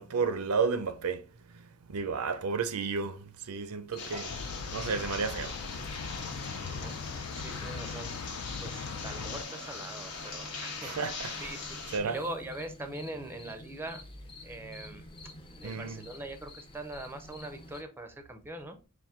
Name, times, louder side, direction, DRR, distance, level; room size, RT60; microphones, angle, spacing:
voice 1, 0.0-6.4 6.7-6.8 10.8-11.3 11.9-12.2 15.6-16.0, right 5 dB, 80° right, 0.5 m, -33 dB
sound 1, 3.9-17.8, left 1 dB, 25° left, 0.7 m, -49 dB
sound 2, 4.0-12.0, left 4 dB, 90° left, 1.1 m, -41 dB
sound 3, 4.3-9.4, left 5 dB, 60° left, 0.4 m, -40 dB
voice 2, 6.5-11.7 12.0-14.0 14.4-15.1 15.6-18.8, right 1 dB, 10° right, 0.5 m, -42 dB
4.3 x 2.6 x 3.6 m
head